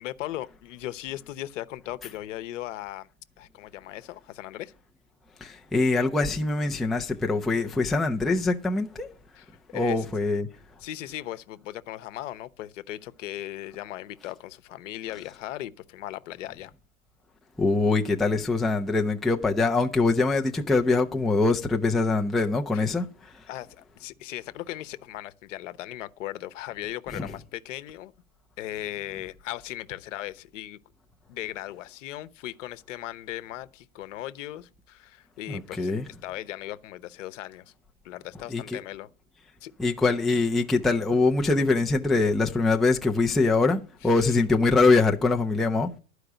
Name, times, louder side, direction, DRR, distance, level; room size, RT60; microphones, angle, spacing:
voice 1, 0.0-3.1 3.4-4.7 9.4-10.0 10.8-16.7 22.7-22.8 23.5-28.1 28.6-30.8 31.3-35.9 36.2-37.7 38.0-39.1 39.6-39.7 44.0-44.3, left 14 dB, 65° left, 0.9 m, -38 dB
voice 2, 5.4-9.1 9.7-10.5 17.6-23.4 27.1-27.3 35.5-36.0 38.5-38.8 39.8-45.9, left 3 dB, ahead, 0.4 m, -23 dB
12.0 x 4.9 x 7.9 m
hypercardioid pair, 115°, 41 cm